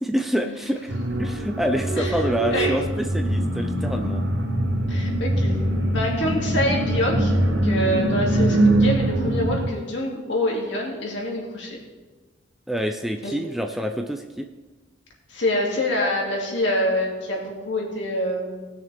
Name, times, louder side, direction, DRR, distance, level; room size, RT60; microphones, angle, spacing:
voice 1, 0.0-4.3 12.7-14.5, equal, ahead, 5 dB, 0.4 m, -27 dB
sound 1, 0.9-9.7, right 1 dB, 70° right, 1.7 m, -23 dB
voice 2, 2.0-2.7 4.9-5.6 5.9-11.8 13.2-13.3 15.3-18.7, left 1 dB, 65° left, -2 dB, 2.5 m, -26 dB
19.0 x 6.6 x 3.5 m, 1.3 s
head